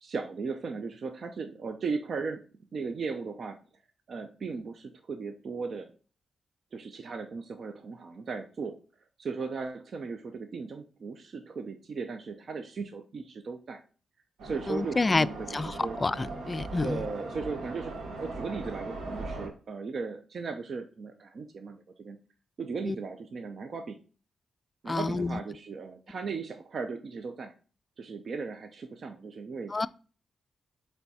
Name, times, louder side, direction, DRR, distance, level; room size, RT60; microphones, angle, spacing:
voice 1, 0.0-2.4 2.7-3.6 4.1-5.9 6.7-8.8 9.2-13.8 14.4-16.0 16.8-22.2 22.6-24.0 24.8-27.5 28.0-29.9, right 4 dB, 60° right, 0.6 m, -37 dB
sound 1, 14.4-19.5, right 2 dB, 85° right, 1.4 m, -39 dB
voice 2, 14.7-15.3 15.5-17.0 22.9-23.0 24.9-25.4 29.7-29.9, left 3 dB, 30° left, 0.3 m, -28 dB
7.0 x 3.4 x 4.1 m
cardioid pair, 75°, 0 cm